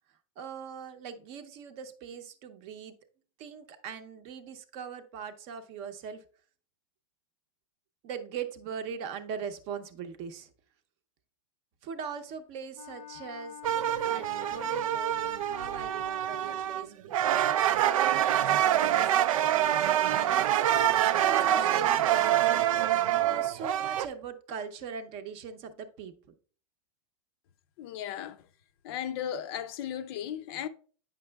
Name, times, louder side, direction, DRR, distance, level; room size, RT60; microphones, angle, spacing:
voice 1, 0.4-2.9 3.4-6.2 8.0-10.5 11.8-13.6 14.0-17.4 17.8-20.4 21.1-22.6 23.2-26.1, right 6 dB, 35° right, 0.7 m, -41 dB
Wind instrument woodwind instrument, 12.7-17.0, left 10 dB, 90° left, 0.8 m, -47 dB
sound 1, 13.6-16.9 17.1-24.1, right 11 dB, 85° right, 0.4 m, -26 dB
voice 2, 27.8-28.4 28.8-30.7, left 9 dB, 50° left, 0.4 m, -36 dB
8.6 x 5.9 x 2.2 m
supercardioid pair, 150°, 17 cm